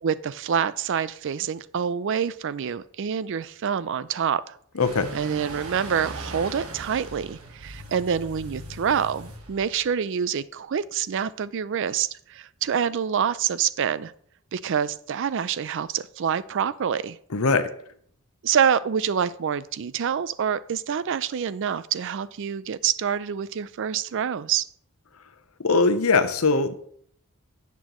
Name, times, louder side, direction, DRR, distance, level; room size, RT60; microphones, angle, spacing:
voice 1, 0.0-4.6 5.1-14.1 14.5-17.2 18.4-24.7, right 7 dB, 55° right, 17 dB, 0.4 m, -26 dB
voice 2, 4.7-5.1 17.3-17.7 25.6-26.8, left 4 dB, 75° left, 10 dB, 0.8 m, -21 dB
sound 1, 4.8-9.9, right 2 dB, 80° right, 1.4 m, -39 dB
10.5 x 8.3 x 3.0 m, 0.63 s
head